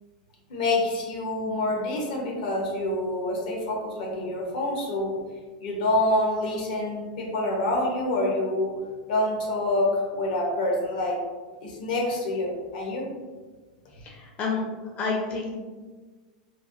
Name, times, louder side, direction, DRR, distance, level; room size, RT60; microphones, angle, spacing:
voice 1, 0.5-5.2 5.6-8.7 9.1-11.2 11.6-13.1, left 1 dB, 75° left, -1 dB, 0.8 m, -27 dB
voice 2, 14.0-14.6 15.0-15.8, left 4 dB, 35° left, -2 dB, 0.5 m, -29 dB
3.2 x 2.1 x 2.4 m, 1.4 s
hypercardioid pair, 120°, 4 cm